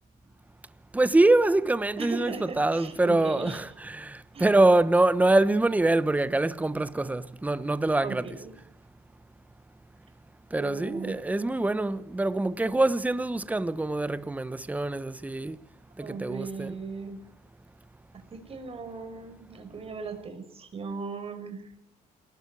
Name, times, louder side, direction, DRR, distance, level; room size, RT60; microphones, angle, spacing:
voice 1, 0.9-8.2 10.5-15.6 16.0-16.7, right 2 dB, 10° right, 1.0 m, -24 dB
voice 2, 2.0-3.6 4.3-4.5 8.0-8.5 10.6-11.2 16.0-17.2 18.1-21.7, right 4 dB, 35° right, 5.1 m, -38 dB
28.5 x 20.0 x 4.9 m
cardioid pair, 110°, 17 cm